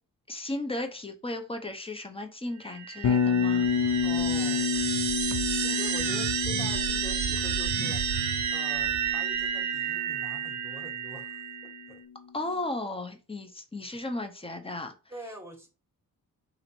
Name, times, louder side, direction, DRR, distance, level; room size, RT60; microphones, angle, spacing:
voice 1, 0.3-3.7 12.3-14.9, left 2 dB, 15° left, 0.9 m, -35 dB
sound 1, 2.6-11.9, right 8 dB, 55° right, 0.6 m, -31 dB
Bass guitar, 3.0-11.1, left 6 dB, 60° left, 0.9 m, -30 dB
voice 2, 3.6-5.1 5.5-8.0 8.5-12.0 15.1-15.7, equal, 5° right, 1.7 m, -44 dB
4.0 x 2.8 x 4.5 m
cardioid pair, 90°, 35 cm